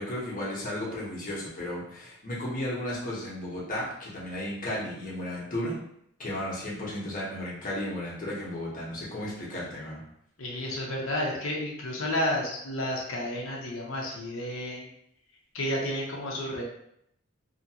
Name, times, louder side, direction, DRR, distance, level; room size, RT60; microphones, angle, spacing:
voice 1, 0.0-5.8 6.2-10.0, left 1 dB, 40° left, -6 dB, 1.1 m, -34 dB
voice 2, 10.4-14.9 15.5-16.6, left 1 dB, 70° left, -2 dB, 0.7 m, -31 dB
2.8 x 2.5 x 2.8 m, 0.74 s
head